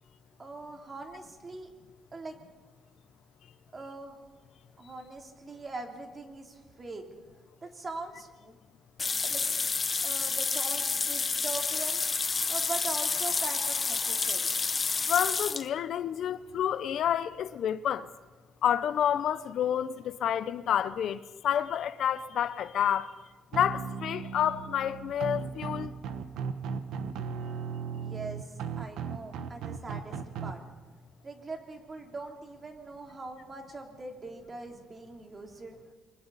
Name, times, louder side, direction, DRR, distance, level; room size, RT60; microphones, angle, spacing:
voice 1, 0.4-1.7 2.1-2.4 3.7-4.2 4.8-7.1 7.6-8.6 9.2-9.4 10.0-12.0 12.5-14.5 27.9-30.6 31.2-35.8, right 3 dB, 35° right, 3.3 m, -42 dB
sound 1, 9.0-15.7, left 4 dB, 35° left, 0.9 m, -29 dB
voice 2, 15.1-18.1 18.6-23.1 23.5-25.9, left 9 dB, 70° left, 0.7 m, -29 dB
sound 2, 23.5-30.5, right 6 dB, 85° right, 1.2 m, -36 dB
28.5 x 23.0 x 4.1 m
cardioid pair, 90°, 0 cm